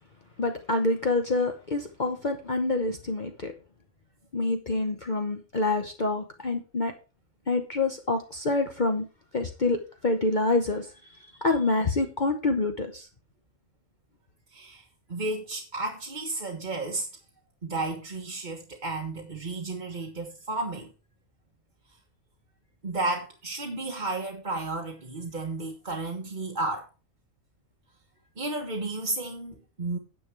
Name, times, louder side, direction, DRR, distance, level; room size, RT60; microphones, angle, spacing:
voice 1, 0.4-3.5 4.3-6.9 7.5-9.0 9.3-10.9 11.2-13.1, left 2 dB, 40° left, 1.1 m, -27 dB
voice 2, 14.5-14.8 15.1-17.1 17.6-20.9 22.8-26.9 28.4-30.0, right 2 dB, 35° right, 1.5 m, -32 dB
10.0 x 7.0 x 4.7 m
omnidirectional pair, 1.4 m